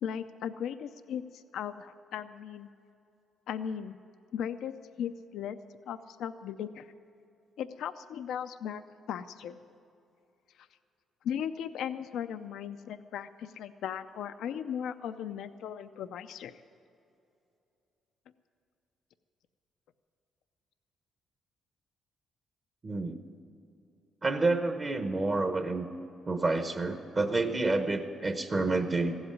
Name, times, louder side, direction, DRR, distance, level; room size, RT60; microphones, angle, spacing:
voice 1, 0.0-2.7 3.5-4.0 4.3-5.6 5.9-6.9 7.6-8.8 9.1-9.6 11.2-16.5, left 8 dB, 80° left, 10 dB, 0.4 m, -37 dB
voice 2, 22.8-23.2 24.2-25.9 26.3-29.1, right 3 dB, 35° right, 6 dB, 0.9 m, -29 dB
15.5 x 8.0 x 9.8 m, 2.7 s
cardioid pair, 90°, 0 cm